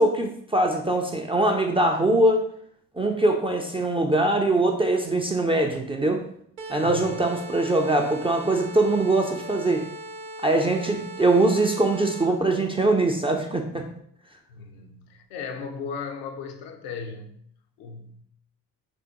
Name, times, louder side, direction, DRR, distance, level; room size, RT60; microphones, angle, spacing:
voice 1, 0.0-2.5 2.9-6.2 6.7-9.8 10.4-13.8, right 2 dB, 15° right, 0.4 m, -22 dB
sound 1, 6.6-12.5, right 1 dB, 90° right, 0.6 m, -39 dB
voice 2, 14.5-17.4 17.8-18.2, left 5 dB, 70° left, 0.7 m, -36 dB
3.3 x 2.9 x 3.7 m
figure-of-eight pair, 40°, 49 cm